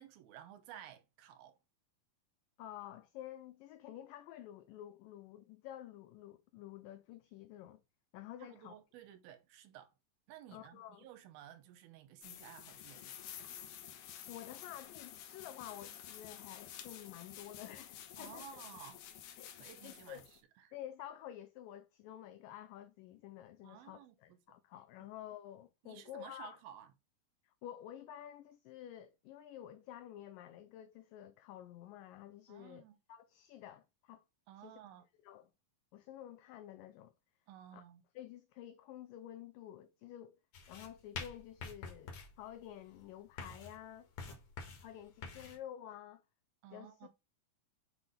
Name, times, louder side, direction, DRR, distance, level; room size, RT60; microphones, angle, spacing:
voice 1, 0.0-1.6 8.4-9.9 10.3-13.2 18.2-19.0 19.6-20.2 20.6-20.7 23.6-24.2 25.8-26.9 32.5-33.0 34.5-35.0 37.5-38.0 46.6-47.1, right 10 dB, 80° right, 2.7 m, -54 dB
voice 2, 2.6-7.8 8.1-8.8 10.5-11.1 14.3-18.6 19.4-19.5 19.8-20.3 20.7-26.6 27.4-34.2 34.6-34.7 35.2-35.5 35.9-37.1 37.7-37.8 38.2-40.4 40.7-44.3 44.8-46.2 46.7-47.1, left 12 dB, 85° left, 1.9 m, -50 dB
sound 1, 12.2-20.4, left 10 dB, 70° left, 2.2 m, -51 dB
sound 2, 40.5-45.6, left 4 dB, 55° left, 2.1 m, -48 dB
8.0 x 3.4 x 4.1 m
omnidirectional pair, 4.4 m